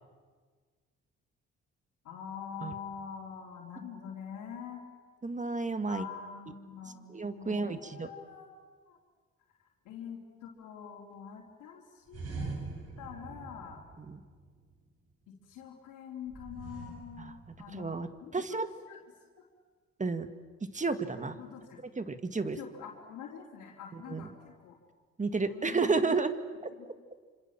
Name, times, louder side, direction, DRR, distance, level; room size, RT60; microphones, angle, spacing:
voice 1, 2.0-4.8 5.9-8.6 8.9-9.0 9.6-12.5 13.0-13.8 15.4-19.0 19.4-19.5 21.2-21.8 22.5-24.8 25.5-26.0 26.8-26.9, left 7 dB, 90° left, -2 dB, 3.5 m, -45 dB
voice 2, 5.2-6.1 7.1-8.1 14.1-14.2 17.2-17.3 17.7-18.7 20.0-20.3 20.7-21.4 22.0-22.6 23.9-24.3 25.2-26.3, right 4 dB, 25° right, 10 dB, 1.9 m, -31 dB
sound 1, 12.1-14.8 16.3-18.0, right 3 dB, 55° right, 6.2 m, -43 dB
27.0 x 26.5 x 7.4 m, 1.5 s
cardioid pair, 90°, 30 cm